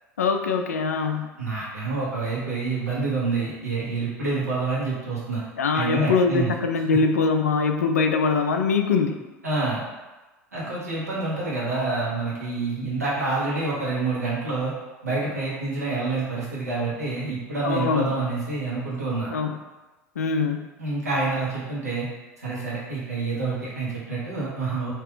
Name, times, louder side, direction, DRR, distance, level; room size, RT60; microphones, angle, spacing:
voice 1, 0.2-1.3 5.6-9.2 17.6-18.1 19.3-19.6 20.2-20.7, left 4 dB, 75° left, 5 dB, 0.4 m, -23 dB
voice 2, 1.4-5.4 5.7-6.5 6.9-7.0 9.4-9.8 10.5-14.7 15.0-19.3 20.8-22.1 22.4-24.9, right 3 dB, 85° right, -8 dB, 1.3 m, -27 dB
3.3 x 2.9 x 3.4 m, 1.2 s
figure-of-eight pair, 75°, 8 cm